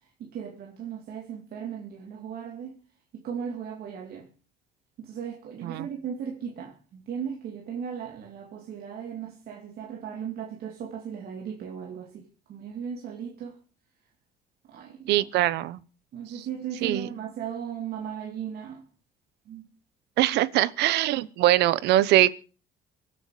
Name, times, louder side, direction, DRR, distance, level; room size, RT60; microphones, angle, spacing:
voice 1, 0.0-2.8 3.1-4.3 5.0-13.6 14.6-15.3 16.1-18.9 19.5-19.7, right 7 dB, 65° right, 2.7 m, -37 dB
voice 2, 15.1-15.8 16.8-17.1 20.2-22.3, right 15 dB, 80° right, 0.9 m, -22 dB
24.0 x 8.8 x 5.0 m
cardioid pair, 110°, 17 cm